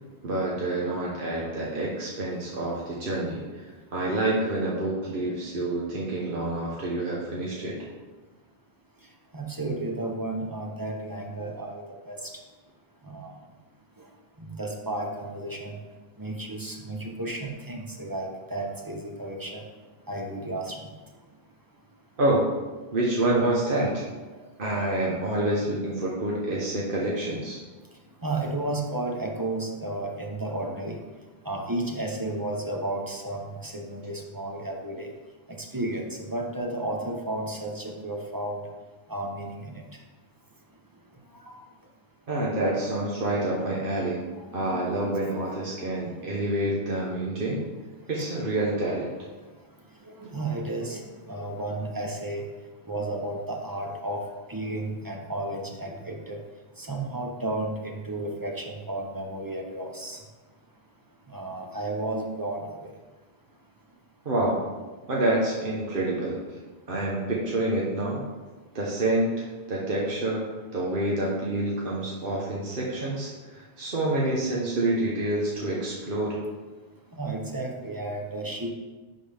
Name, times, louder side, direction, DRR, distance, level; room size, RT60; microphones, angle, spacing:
voice 1, 0.2-3.7 3.9-7.8 22.2-22.4 22.9-24.0 24.6-27.6 42.3-44.2 44.5-47.6 48.1-49.1 64.2-64.6 65.1-66.4 66.9-68.2 68.7-76.4, right 1 dB, 60° right, -4 dB, 1.2 m, -27 dB
voice 2, 9.3-12.3 13.1-13.3 14.4-15.8 16.2-19.6 20.1-20.9 28.2-31.0 31.4-35.1 35.6-36.0 36.3-38.6 39.1-39.8 41.5-41.6 44.6-44.8 46.9-47.0 50.2-52.4 52.9-56.4 56.8-60.2 61.3-62.6 77.2-78.7, right 2 dB, 20° right, 1 dB, 0.8 m, -33 dB
10.5 x 4.1 x 3.4 m, 1.3 s
omnidirectional pair, 1.0 m